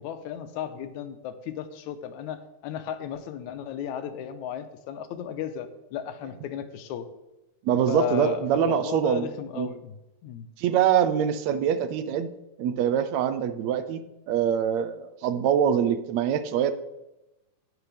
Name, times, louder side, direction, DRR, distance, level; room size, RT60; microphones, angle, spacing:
voice 1, 0.0-7.1 7.9-10.0 10.2-10.5, left 9 dB, 80° left, 9 dB, 2.1 m, -34 dB
voice 2, 7.6-9.3 9.6-9.7 10.6-12.3 12.6-14.0 14.3-16.7, right 9 dB, 75° right, 11 dB, 1.8 m, -24 dB
11.0 x 9.3 x 3.4 m, 0.95 s
omnidirectional pair, 3.4 m